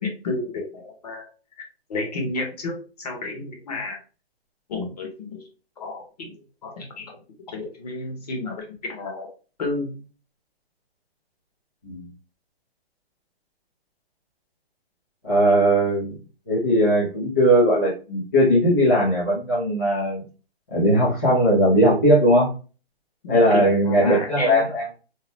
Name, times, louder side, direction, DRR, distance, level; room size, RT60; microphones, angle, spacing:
voice 1, 0.0-1.3 1.6-1.7 1.9-4.0 4.7-5.4 5.8-6.3 6.6-7.2 7.5-9.3 9.6-10.0 23.2-24.6, left 3 dB, 40° left, 1 dB, 1.0 m, -31 dB
voice 2, 15.2-16.1 16.5-20.2 20.7-22.5 23.3-24.9, equal, 15° left, -9 dB, 0.5 m, -19 dB
2.8 x 2.0 x 3.3 m, 0.35 s
hypercardioid pair, 170°, 31 cm